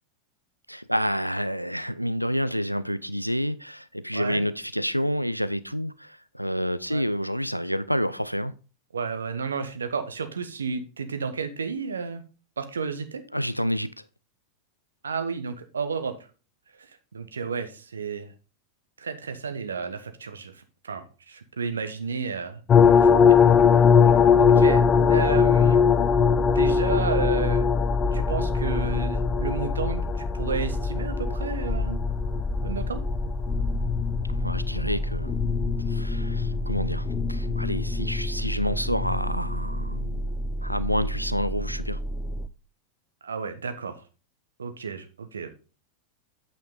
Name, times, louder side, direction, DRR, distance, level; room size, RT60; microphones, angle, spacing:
voice 1, 0.7-8.5 13.3-13.9 34.4-35.4 35.9-40.3 40.6-42.0, equal, 90° right, 0.4 m, -28 dB
voice 2, 8.9-12.2 12.6-13.2 15.0-16.1 16.8-18.3 19.0-22.6 23.0-23.1 24.4-24.8 25.1-25.8 26.4-27.7 28.1-30.0 30.3-32.0 32.6-33.0 43.2-44.0 44.6-45.5, right 5 dB, 70° right, 1.1 m, -32 dB
sound 1, 22.7-42.5, left 5 dB, 25° left, 0.5 m, -22 dB
8.7 x 5.8 x 3.7 m
figure-of-eight pair, 90°, 0 cm